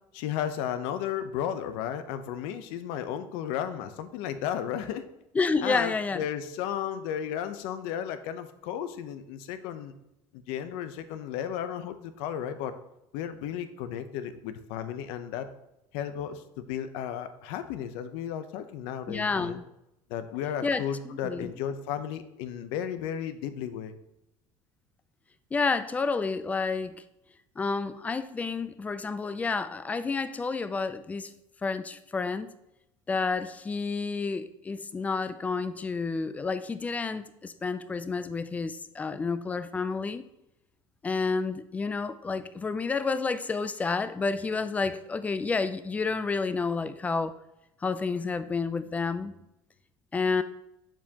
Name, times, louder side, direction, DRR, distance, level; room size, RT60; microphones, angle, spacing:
voice 1, 0.1-5.1 5.6-9.9 10.3-12.7 13.1-15.5 15.9-19.6 20.1-23.9, left 9 dB, 75° left, 10 dB, 0.7 m, -34 dB
voice 2, 5.3-6.3 19.1-19.6 20.6-21.5 25.5-27.0 27.6-31.3 31.6-32.5 33.1-40.2 41.0-47.3 47.8-49.3 50.1-50.4, left 4 dB, 15° left, 13 dB, 0.4 m, -30 dB
7.4 x 7.1 x 2.9 m, 0.86 s
cardioid pair, 140°, 9 cm